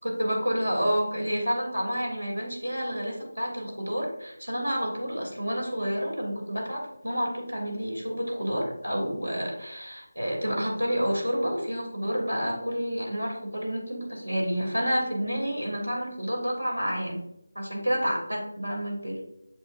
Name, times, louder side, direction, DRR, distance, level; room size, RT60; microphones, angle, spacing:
voice 1, 0.0-17.2 17.5-19.2, equal, 85° right, 0 dB, 2.5 m, -29 dB
7.2 x 6.4 x 2.5 m, 0.83 s
figure-of-eight pair, 165°, 0 cm